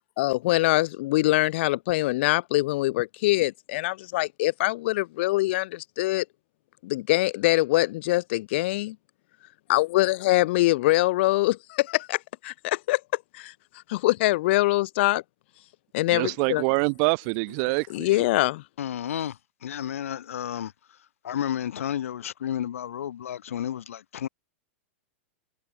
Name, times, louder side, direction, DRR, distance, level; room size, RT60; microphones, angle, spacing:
voice 1, 0.2-6.2 6.8-9.0 9.7-13.0 13.3-13.5 13.9-15.2 15.9-16.6 17.9-18.6, left 19 dB, 55° left, 3.8 m, -24 dB
voice 2, 16.1-18.1, right 40 dB or more, 45° right, 7.9 m, -25 dB
voice 3, 18.8-19.3 19.6-20.7 21.2-24.3, left 10 dB, 85° left, 4.3 m, -31 dB
hypercardioid pair, 145°, 7 cm